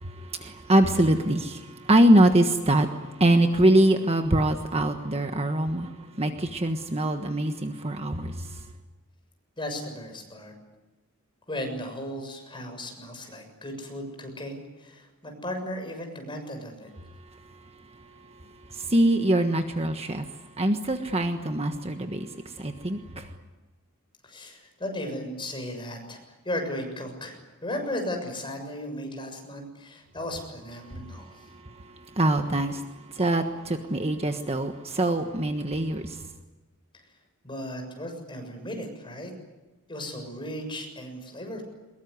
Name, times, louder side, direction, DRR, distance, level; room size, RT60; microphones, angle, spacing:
voice 1, 0.0-8.6 17.5-18.0 18.7-23.3 30.9-36.3, right 1 dB, 30° right, 6 dB, 1.4 m, -24 dB
voice 2, 9.6-10.5 11.5-16.9 24.2-26.2 26.4-31.4 36.9-37.0 37.4-39.3 39.9-41.6, left 1 dB, 25° left, 3 dB, 6.8 m, -36 dB
23.5 x 22.0 x 9.7 m, 1.1 s
head